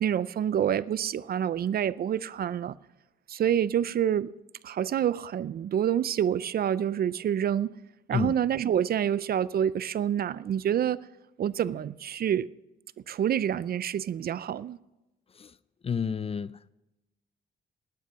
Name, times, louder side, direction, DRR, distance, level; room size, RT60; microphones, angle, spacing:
voice 1, 0.0-2.8 3.3-4.3 4.6-7.7 8.1-11.0 11.4-12.5 13.1-14.8, right 9 dB, 50° right, 0.5 m, -27 dB
voice 2, 15.8-16.7, left 6 dB, 30° left, 0.4 m, -30 dB
19.5 x 9.8 x 5.7 m
cardioid pair, 90°, 20 cm